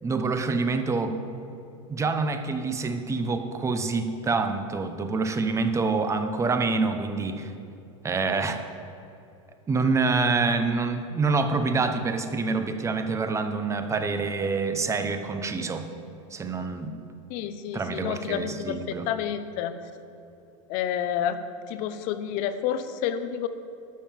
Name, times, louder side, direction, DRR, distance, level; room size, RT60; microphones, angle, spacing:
voice 1, 0.0-1.2 1.9-7.5 8.0-8.6 9.7-15.9 16.3-16.9 17.7-19.0, right 4 dB, 15° right, 7 dB, 0.9 m, -26 dB
voice 2, 17.3-19.7 20.7-21.4 21.7-23.5, left 9 dB, 55° left, 11 dB, 0.9 m, -29 dB
12.0 x 5.5 x 7.5 m, 2.8 s
supercardioid pair, 115°, 17 cm